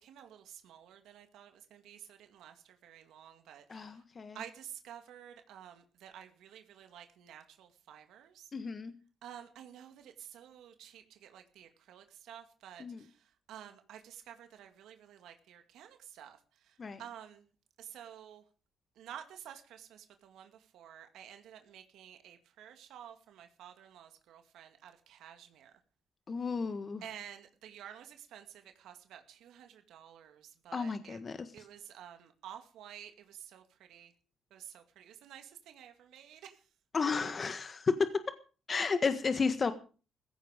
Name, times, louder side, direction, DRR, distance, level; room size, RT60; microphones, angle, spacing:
voice 1, 0.0-4.0 4.3-8.5 9.2-16.4 16.6-17.4 17.8-18.4 19.0-25.7 27.0-31.2 31.5-34.1 34.5-36.6, right 10 dB, 80° right, 6 dB, 2.2 m, -51 dB
voice 2, 3.7-4.4 8.5-8.9 12.8-13.0 16.8-17.0 26.3-27.0 30.7-31.6 36.9-38.2 38.7-39.7, left 4 dB, 40° left, 10 dB, 1.5 m, -32 dB
15.5 x 15.5 x 5.2 m, 0.38 s
cardioid pair, 90°, 0 cm